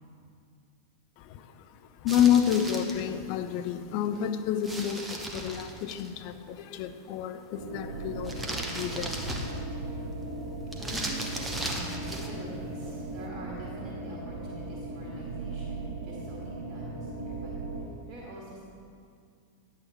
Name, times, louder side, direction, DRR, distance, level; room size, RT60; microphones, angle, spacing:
voice 1, 1.2-1.7 2.0-9.5, left 9 dB, 45° left, 9 dB, 0.5 m, -29 dB
sound 1, 2.1-3.0 4.6-6.1 8.2-9.8 10.7-12.4, right 1 dB, 10° right, 1.1 m, -36 dB
sound 2, 7.5-17.8, right 2 dB, 60° right, 1.8 m, -38 dB
voice 2, 9.5-10.2 10.7-17.5 18.1-18.6, equal, 30° right, -4 dB, 2.2 m, -45 dB
10.5 x 8.5 x 4.5 m, 2.3 s
figure-of-eight pair, 90°, 0 cm